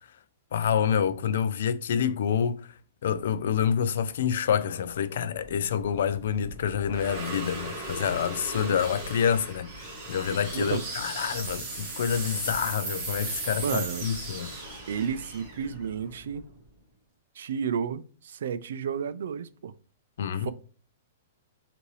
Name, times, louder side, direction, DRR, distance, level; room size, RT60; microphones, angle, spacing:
voice 1, 0.5-2.7 3.0-14.5 20.2-20.5, left 8 dB, 65° left, 0.4 m, -27 dB
sound 1, 5.4-16.6, right 2 dB, 25° right, 1.4 m, -37 dB
voice 2, 13.6-14.1 14.9-16.5 17.4-19.7 20.4-20.5, right 7 dB, 70° right, 0.3 m, -31 dB
5.3 x 2.6 x 3.2 m
hypercardioid pair, 165°, 0 cm